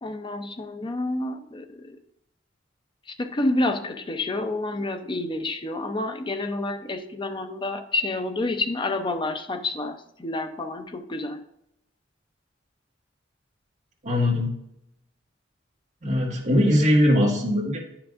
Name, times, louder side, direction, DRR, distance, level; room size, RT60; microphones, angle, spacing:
voice 1, 0.0-2.0 3.2-11.4, left 2 dB, 25° left, 7 dB, 0.6 m, -29 dB
voice 2, 14.0-14.5 16.0-17.8, left 1 dB, 40° right, -3 dB, 1.7 m, -21 dB
9.7 x 5.8 x 2.5 m, 0.80 s
head